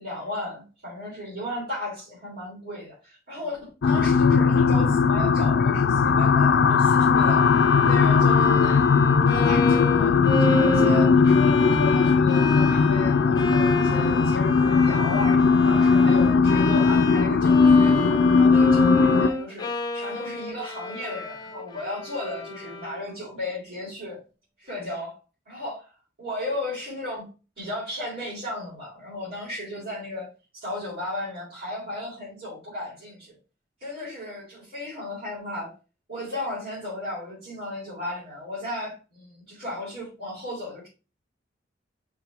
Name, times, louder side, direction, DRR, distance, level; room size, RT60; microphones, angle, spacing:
voice 1, 0.0-7.4 7.9-8.8 9.3-18.0 18.4-24.2 24.6-25.1 25.5-25.9 26.2-27.3 27.6-30.3 30.6-33.3 33.8-35.7 36.1-40.9, left 1 dB, 55° right, -9 dB, 3.9 m, -35 dB
sound 1, 3.8-19.3, left 5 dB, 60° left, 0.4 m, -19 dB
Bowed string instrument, 7.2-23.2, left 1 dB, 20° left, 0.9 m, -30 dB
5.8 x 4.0 x 4.3 m, 0.33 s
head